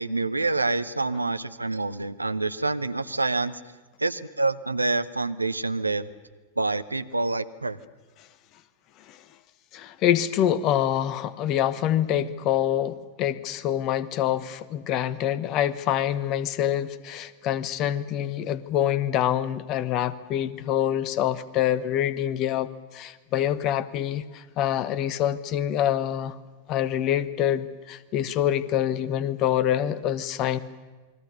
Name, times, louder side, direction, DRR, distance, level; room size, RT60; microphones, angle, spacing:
voice 1, 0.0-3.6 4.0-6.1 6.6-7.8, right 3 dB, 85° right, 14 dB, 0.8 m, -27 dB
voice 2, 9.7-26.4 26.7-30.6, left 11 dB, 40° left, 17 dB, 1.2 m, -26 dB
28.5 x 21.5 x 6.9 m, 1.3 s
figure-of-eight pair, 90°, 0 cm